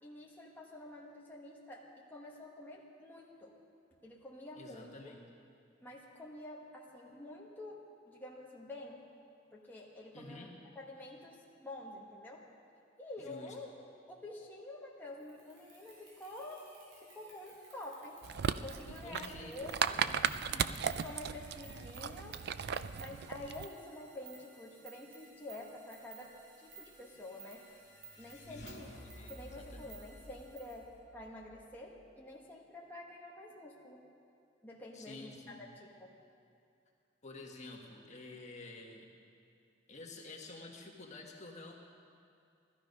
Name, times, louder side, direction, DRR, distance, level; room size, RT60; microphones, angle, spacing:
voice 1, 0.0-3.5 4.0-4.9 5.8-7.8 8.0-9.0 9.5-12.4 13.0-13.7 14.1-16.7 17.0-18.2 18.6-20.0 21.0-22.4 23.0-27.6 28.2-28.9 29.3-34.0 34.6-36.1, left 1 dB, 10° left, -4 dB, 1.4 m, -48 dB
voice 2, 4.5-5.3 10.1-10.5 13.2-13.6 18.9-19.7 19.9-20.8 28.5-30.0 34.9-35.6 37.2-39.1 39.9-41.7, left 2 dB, 40° left, -1 dB, 1.6 m, -50 dB
sound 1, 15.2-30.8, right 3 dB, 90° right, 3.6 m, -58 dB
sound 2, 18.2-23.7, right 7 dB, 60° right, 0.4 m, -36 dB
sound 3, 26.5-32.1, left 1 dB, 65° left, 2.0 m, -55 dB
17.0 x 13.0 x 5.4 m, 2.5 s
head